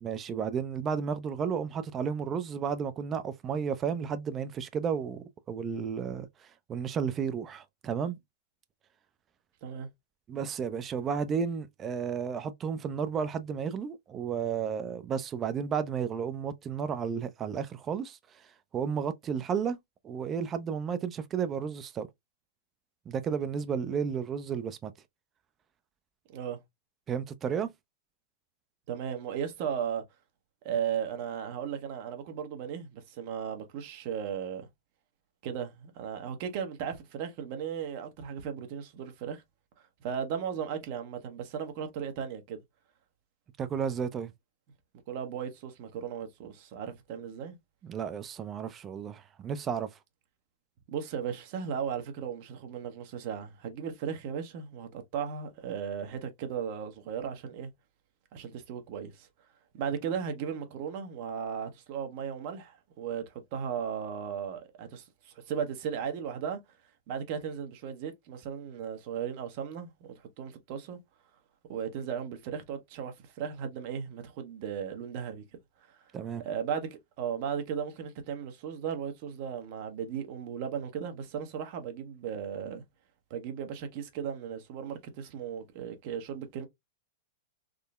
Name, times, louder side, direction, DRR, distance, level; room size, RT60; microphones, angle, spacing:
voice 1, 0.0-8.2 10.3-18.2 18.7-19.8 20.0-22.1 23.1-24.9 27.1-27.7 43.6-44.3 47.8-49.9 76.1-76.4, right 7 dB, 25° right, 0.4 m, -32 dB
voice 2, 28.9-30.0 30.6-34.7 35.4-39.4 40.0-42.6 45.1-47.6 50.9-57.7 58.3-59.3 59.7-66.6 67.1-71.0 71.7-75.4 75.9-76.0 76.4-82.8 83.3-86.7, right 8 dB, 55° right, 0.8 m, -36 dB
3.6 x 2.0 x 2.3 m
hypercardioid pair, 110°, 0 cm